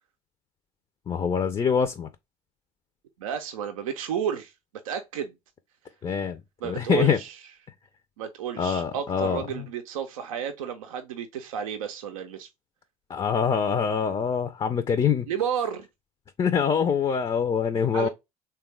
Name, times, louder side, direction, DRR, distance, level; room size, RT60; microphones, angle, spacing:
voice 1, 1.1-2.1 6.0-7.2 8.6-9.7 13.1-15.3 16.4-18.1, left 7 dB, 30° left, 0.4 m, -25 dB
voice 2, 3.2-4.5 4.8-5.3 6.6-7.3 8.2-12.5 15.3-15.9 17.9-18.1, right 8 dB, 85° right, 0.4 m, -31 dB
3.3 x 2.3 x 3.1 m
hypercardioid pair, 60°, 17 cm